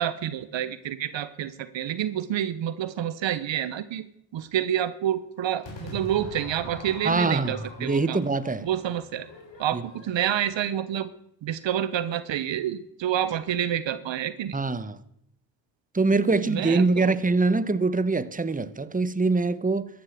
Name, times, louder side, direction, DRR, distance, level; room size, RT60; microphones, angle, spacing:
voice 1, 0.0-4.0 4.3-8.2 8.6-9.3 9.6-11.1 11.4-14.6 16.3-17.2, right 10 dB, 70° right, 1.0 m, -28 dB
Crowd / Fireworks, 5.6-10.9, left 1 dB, 65° left, 4.2 m, -43 dB
voice 2, 7.0-8.7 9.7-9.8 14.5-15.0 15.9-19.9, right 3 dB, 15° right, 1.1 m, -24 dB
14.0 x 10.0 x 7.4 m
supercardioid pair, 40°, 47 cm